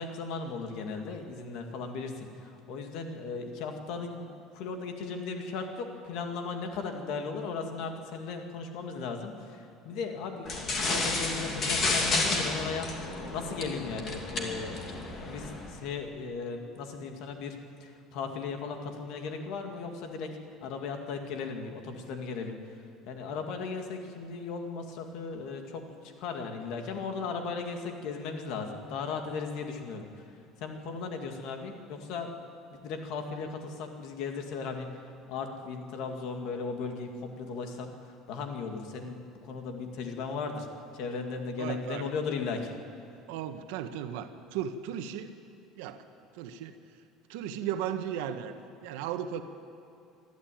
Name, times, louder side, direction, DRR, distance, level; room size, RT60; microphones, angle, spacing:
voice 1, 0.0-4.3 4.5-14.8 15.3-20.3 20.6-22.6 23.1-30.1 30.6-32.3 32.7-34.9 35.3-37.9 38.3-40.7 40.9-42.8, left 4 dB, 55° left, 4 dB, 2.3 m, -37 dB
sound 1, 10.4-15.7, left 3 dB, 30° left, 2.6 m, -31 dB
voice 2, 41.6-42.0 43.3-45.3 45.7-46.0 46.3-46.7 47.3-48.5 48.8-49.4, right 9 dB, 90° right, 8 dB, 1.3 m, -35 dB
25.5 x 12.5 x 9.3 m, 2.5 s
cardioid pair, 170°, 0 cm